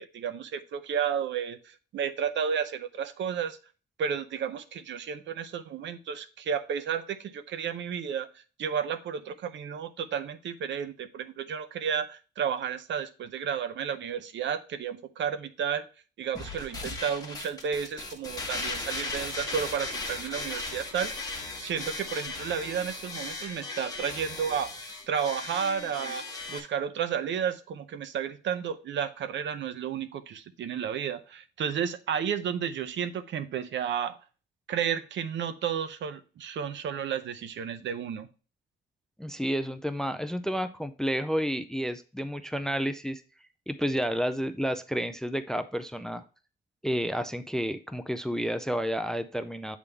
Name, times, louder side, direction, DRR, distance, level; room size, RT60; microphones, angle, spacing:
voice 1, 0.0-3.6 4.0-15.9 16.2-21.1 21.6-24.7 25.1-34.2 34.7-38.3, right 7 dB, 75° right, 11 dB, 0.6 m, -32 dB
sound 1, 16.3-26.6, left 3 dB, 20° left, 1.2 m, -37 dB
voice 2, 39.2-43.2 43.7-46.2 46.8-49.8, equal, 5° left, 11 dB, 0.4 m, -30 dB
8.2 x 3.6 x 3.4 m, 0.36 s
wide cardioid pair, 145°, 19 cm